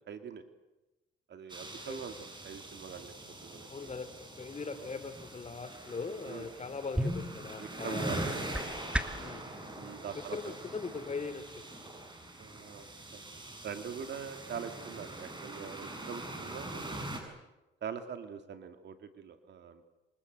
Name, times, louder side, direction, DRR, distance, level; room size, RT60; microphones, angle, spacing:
voice 1, 0.1-0.4 1.3-3.1 3.4-3.9 6.2-6.5 7.6-8.3 9.7-10.4 12.4-12.8 13.1-13.2 13.6-17.1 17.8-19.9, right 7 dB, 60° right, 7 dB, 2.6 m, -43 dB
sound 1, 1.5-17.2, right 1 dB, 25° right, 7.8 m, -43 dB
voice 2, 3.7-8.6 9.1-9.5 10.1-11.8, left 4 dB, 35° left, 11 dB, 3.0 m, -41 dB
sound 2, 6.9-9.4, equal, 5° right, 2.0 m, -36 dB
27.0 x 26.0 x 8.1 m, 1.0 s
cardioid pair, 90°, 20 cm